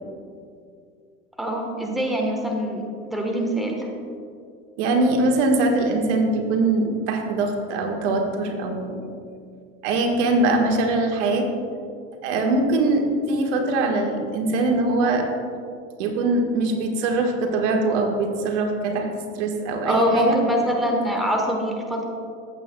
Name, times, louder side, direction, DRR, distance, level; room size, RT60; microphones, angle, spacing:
voice 1, 1.4-3.9 19.8-22.0, equal, ahead, 1 dB, 1.2 m, -24 dB
voice 2, 4.8-9.0 9.8-11.5 12.2-15.3 16.0-19.1 19.3-20.4, right 2 dB, 60° right, 3 dB, 1.5 m, -22 dB
15.0 x 8.1 x 2.3 m, 2.3 s
hypercardioid pair, 95°, 39 cm